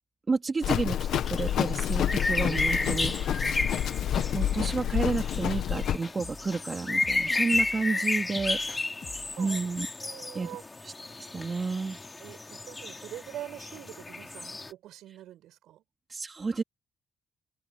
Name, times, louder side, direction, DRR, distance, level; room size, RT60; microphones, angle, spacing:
voice 1, 0.3-3.1 4.1-8.9 9.4-9.9 10.3-10.5 11.3-12.0 16.1-16.6, right 4 dB, 30° right, 3.0 m, -31 dB
Livestock farm animals working animals, 0.6-6.0, left 10 dB, 75° left, 1.6 m, -28 dB
sound 1, 1.1-14.7, left 3 dB, 20° left, 4.0 m, -33 dB
sound 2, 4.0-6.7 7.0-9.4, left 5 dB, 40° left, 2.8 m, -46 dB
voice 2, 9.2-9.6 10.0-10.6 12.2-15.8, right 13 dB, 85° right, 7.8 m, -44 dB
cardioid pair, 90°, 0 cm